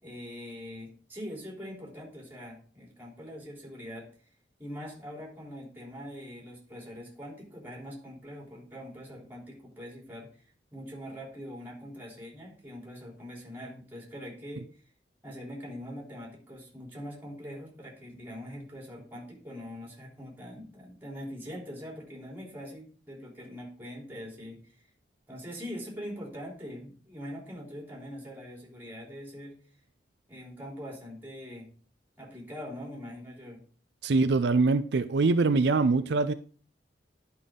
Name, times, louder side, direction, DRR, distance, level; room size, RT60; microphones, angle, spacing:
voice 1, 0.0-4.1 4.6-10.3 10.7-14.7 15.2-24.6 25.3-29.6 30.3-31.7 32.2-33.6, equal, 10° right, 3.5 m, -43 dB
voice 2, 34.0-36.3, right 3 dB, 70° right, 0.4 m, -23 dB
11.0 x 5.6 x 3.7 m
head